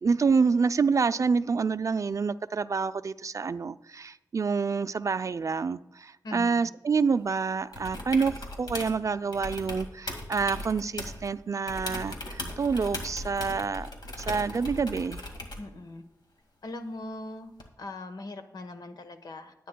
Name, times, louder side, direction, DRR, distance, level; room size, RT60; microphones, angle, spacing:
voice 1, 0.0-13.9 14.3-15.2, right 5 dB, 50° right, 13 dB, 0.4 m, -27 dB
voice 2, 6.2-6.7 15.6-16.0 16.6-17.5 17.8-19.5, left 2 dB, 70° left, 8 dB, 1.1 m, -40 dB
sound 1, 7.7-9.0 9.3-11.3 11.7-15.7 17.6-17.7, left 2 dB, 85° left, 2.0 m, -38 dB
22.0 x 9.3 x 2.2 m, 0.88 s
wide cardioid pair, 75°, 7 cm